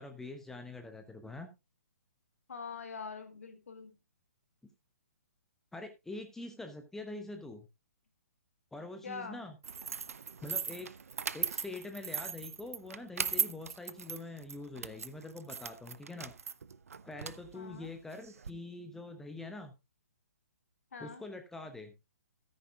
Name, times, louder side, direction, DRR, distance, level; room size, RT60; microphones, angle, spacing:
voice 1, 0.0-1.5 5.7-7.7 8.7-9.6 10.4-10.9 11.3-16.3 17.0-19.7 21.0-21.9, left 2 dB, 5° left, 0.9 m, -44 dB
voice 2, 2.5-3.9 9.0-9.4 17.5-17.9 20.9-21.2, left 5 dB, 60° left, 2.3 m, -44 dB
sound 1, 9.6-18.5, right 6 dB, 60° right, 0.6 m, -39 dB
13.5 x 9.5 x 2.4 m
figure-of-eight pair, 125°, 9 cm